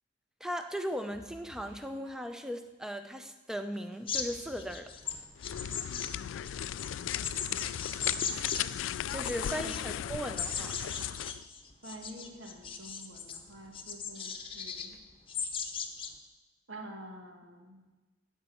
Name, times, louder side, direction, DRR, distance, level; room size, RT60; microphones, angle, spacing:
voice 1, 0.4-4.9 9.1-10.8, equal, 5° right, 7 dB, 0.6 m, -37 dB
sound 1, 0.7-1.8 2.0-2.7 3.2-3.3 3.7-4.8 5.0-5.7 6.2-6.3 6.7-7.8 8.0-8.7 9.0-9.1, equal, 60° right, 4.3 m, -55 dB
sound 2, 4.1-8.6 8.9-9.8 10.4-13.4 13.7-14.9 15.3-16.1, left 6 dB, 30° left, 0.9 m, -37 dB
sound 3, 5.4-11.4, left 10 dB, 75° left, 0.3 m, -36 dB
voice 2, 9.2-9.7 11.8-15.0 16.7-17.8, right 1 dB, 75° right, 2 dB, 2.1 m, -47 dB
15.5 x 5.5 x 7.8 m, 1.2 s
head